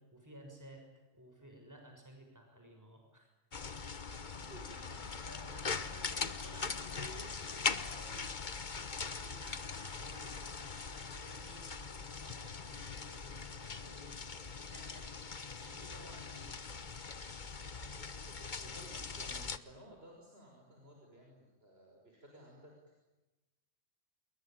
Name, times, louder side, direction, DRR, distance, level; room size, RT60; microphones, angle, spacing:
voice 1, 0.0-3.3 3.7-3.8 4.7-8.4 8.9-14.2 14.6-16.6 18.2-18.4, equal, 15° right, 2 dB, 6.6 m, -55 dB
sound 1, 3.5-19.6, left 5 dB, 45° left, 1.3 m, -41 dB
voice 2, 4.2-5.1 18.5-22.7, right 1 dB, 55° right, 0 dB, 6.2 m, -56 dB
28.5 x 22.0 x 9.1 m, 1.1 s
omnidirectional pair, 1.2 m